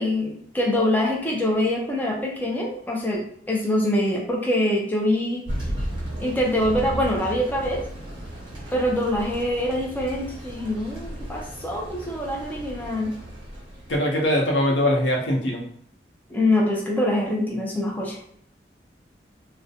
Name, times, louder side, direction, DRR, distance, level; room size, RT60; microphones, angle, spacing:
voice 1, 0.0-5.4 6.2-7.8 8.7-13.1 16.3-18.2, left 1 dB, 10° left, -1 dB, 0.4 m, -24 dB
Thunder, 5.4-14.0, right 1 dB, 30° right, 1.1 m, -35 dB
voice 2, 13.9-15.6, left 1 dB, 90° left, -1 dB, 0.7 m, -22 dB
2.4 x 2.1 x 2.7 m, 0.64 s
head